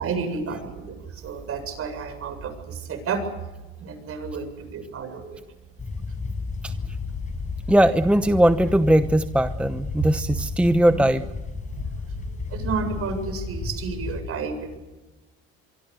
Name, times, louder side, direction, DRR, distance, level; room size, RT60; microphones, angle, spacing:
voice 1, 0.0-3.2 3.8-5.4 10.0-11.0 11.7-14.8, right 5 dB, 45° right, 8 dB, 7.6 m, -31 dB
sound 1, 5.8-14.2, left 4 dB, 25° left, 6.1 m, -33 dB
voice 2, 7.7-11.2, right 1 dB, 5° right, 10 dB, 1.0 m, -19 dB
26.0 x 24.5 x 6.9 m, 1.1 s
supercardioid pair, 105°, 31 cm